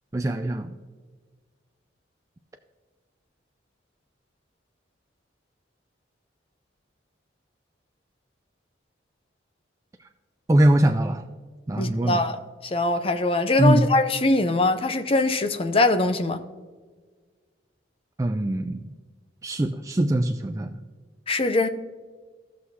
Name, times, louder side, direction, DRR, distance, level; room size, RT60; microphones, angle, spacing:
voice 1, 0.1-0.7 10.5-11.2 11.7-12.2 13.6-13.8 18.2-18.8 19.4-20.8, right 1 dB, 15° right, 0.3 m, -22 dB
voice 2, 11.8-12.4 12.6-16.4 21.3-21.7, left 2 dB, 30° left, 0.6 m, -22 dB
16.0 x 6.3 x 2.8 m
head